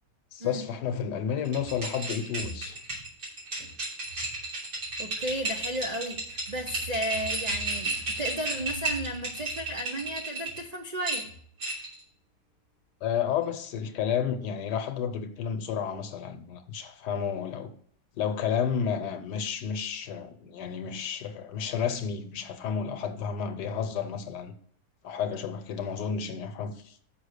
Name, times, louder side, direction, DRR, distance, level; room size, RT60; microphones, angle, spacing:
voice 1, 0.3-2.8 13.0-17.7 18.2-24.5 25.0-27.0, left 7 dB, 75° left, 1.4 m, -31 dB
sound 1, 1.5-10.6 11.0-12.0, right 2 dB, 80° right, 3.8 m, -33 dB
voice 2, 5.0-11.3, equal, 60° right, 0.4 m, -34 dB
6.4 x 5.8 x 6.4 m
omnidirectional pair, 1.8 m